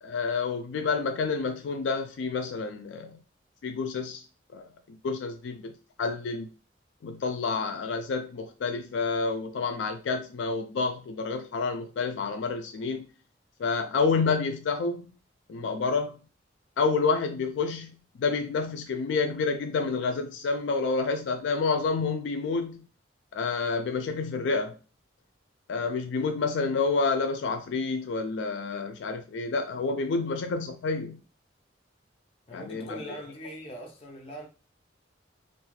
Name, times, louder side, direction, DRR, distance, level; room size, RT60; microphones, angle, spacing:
voice 1, 0.0-3.2 3.6-4.2 4.5-5.7 6.0-6.5 7.0-13.1 13.6-15.1 15.5-16.2 16.8-22.9 23.3-24.8 25.7-31.2 32.5-33.2, left 4 dB, 75° left, 0.3 m, -29 dB
voice 2, 32.5-34.5, equal, 35° left, 0.6 m, -41 dB
2.5 x 2.3 x 3.1 m
head